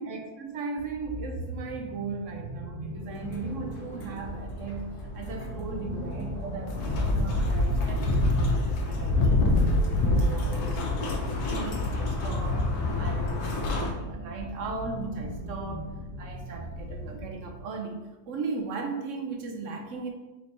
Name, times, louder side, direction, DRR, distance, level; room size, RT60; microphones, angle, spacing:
voice 1, 0.0-20.1, right 4 dB, 65° right, 3 dB, 0.8 m, -38 dB
sound 1, 0.8-17.6, right 1 dB, 35° right, 1.6 m, -39 dB
sound 2, 3.3-13.9, left 2 dB, 75° left, 1.3 m, -27 dB
4.3 x 2.8 x 4.1 m, 1.1 s
omnidirectional pair, 1.7 m